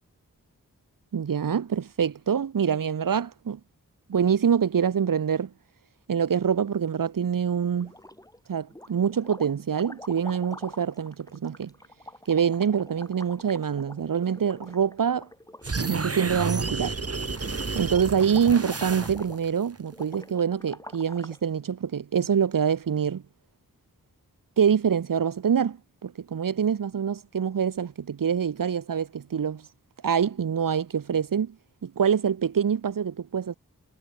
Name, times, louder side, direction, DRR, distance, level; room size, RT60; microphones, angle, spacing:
voice 1, 1.1-3.6 4.1-5.5 6.1-7.9 8.5-11.7 12.3-15.3 15.7-17.0 17.7-23.2 24.6-29.6 30.0-31.5 31.8-33.6, right 7 dB, 70° right, 0.9 m, -25 dB
sound 1, 7.8-8.4 8.7-21.4, left 1 dB, 10° left, 3.6 m, -46 dB
sound 2, 15.6-19.5, right 4 dB, 45° right, 2.4 m, -31 dB
wide cardioid pair, 75°, 34 cm